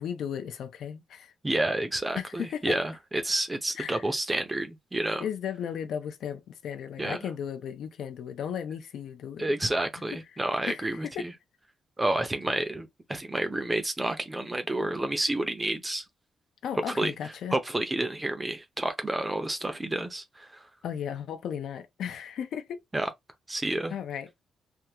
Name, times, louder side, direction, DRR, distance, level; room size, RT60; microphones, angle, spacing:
voice 1, 0.0-1.3 2.2-2.8 3.8-4.1 5.2-9.5 10.1-10.4 10.7-11.3 16.6-17.6 20.8-22.8 23.9-24.4, left 8 dB, 75° left, 0.5 m, -35 dB
voice 2, 1.4-2.9 3.2-5.2 7.0-7.2 9.4-11.3 12.0-16.0 16.9-17.1 17.5-20.6 22.9-23.1 23.5-23.9, right 1 dB, 15° right, 0.6 m, -29 dB
3.4 x 2.3 x 2.8 m
wide cardioid pair, 160°, 0 cm